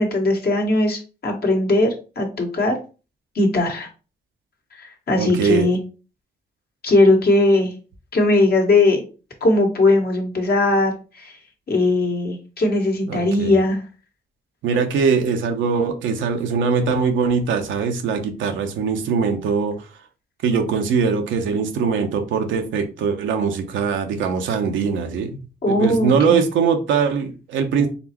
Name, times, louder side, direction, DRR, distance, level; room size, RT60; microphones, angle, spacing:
voice 1, 0.0-2.7 3.3-3.9 4.8-5.8 6.8-7.7 8.1-9.0 9.4-11.4 11.7-13.8 25.6-26.4, left 2 dB, 55° left, 2 dB, 1.5 m, -19 dB
voice 2, 5.1-5.7 13.1-13.6 14.6-19.9 20.4-25.4 25.7-27.9, right 5 dB, 85° right, 5 dB, 0.7 m, -21 dB
4.2 x 3.3 x 2.9 m, 0.34 s
supercardioid pair, 55°, 19 cm